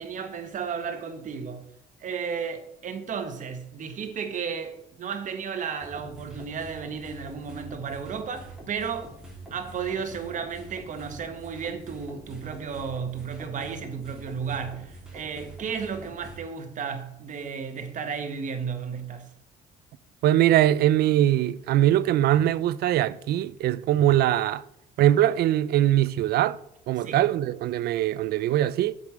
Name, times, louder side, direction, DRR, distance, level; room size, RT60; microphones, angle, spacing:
voice 1, 0.0-1.6 2.0-9.1 9.5-19.3 27.0-27.3, right 6 dB, 50° right, 1.4 m, -33 dB
sound 1, 5.8-16.4, right 2 dB, 5° right, 3.8 m, -45 dB
voice 2, 20.2-24.6 25.0-26.6 26.9-28.9, right 13 dB, 70° right, 0.5 m, -22 dB
7.9 x 5.4 x 6.3 m
cardioid pair, 110°, 17 cm